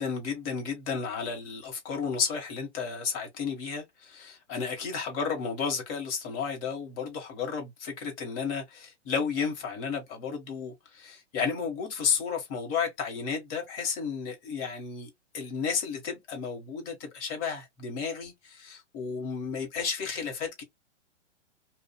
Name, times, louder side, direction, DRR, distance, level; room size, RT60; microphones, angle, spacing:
voice 1, 0.0-20.6, left 6 dB, 35° left, 1.3 m, -32 dB
2.6 x 2.4 x 2.2 m
hypercardioid pair, 125°, 35 cm